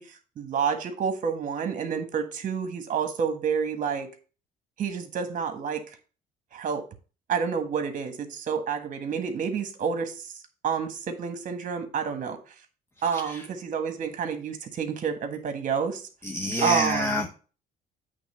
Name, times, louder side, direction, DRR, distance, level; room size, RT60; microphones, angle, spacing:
voice 1, 0.0-4.1 4.8-6.0 6.5-6.8 7.3-12.4 13.0-16.1 16.6-17.2, right 6 dB, 50° right, 7 dB, 1.5 m, -29 dB
voice 2, 13.1-13.4 16.2-17.3, left 1 dB, 15° left, 4 dB, 0.8 m, -28 dB
8.4 x 3.4 x 5.6 m, 0.37 s
cardioid pair, 110°, 17 cm